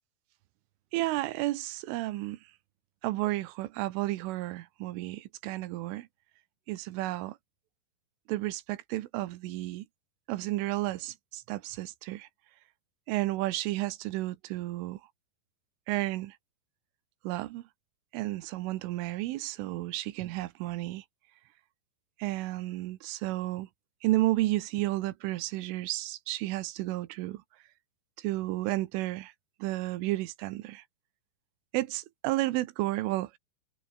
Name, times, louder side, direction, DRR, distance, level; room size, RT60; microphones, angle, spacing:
voice 1, 0.9-2.5 3.0-6.1 6.7-7.4 8.3-9.9 10.3-12.3 13.1-15.0 15.9-16.4 17.3-17.6 18.1-21.1 22.2-23.7 24.0-27.4 28.2-29.3 29.6-30.8 31.7-33.4, right 17 dB, 90° right, 3.6 m, -32 dB
omnidirectional pair, 5.6 m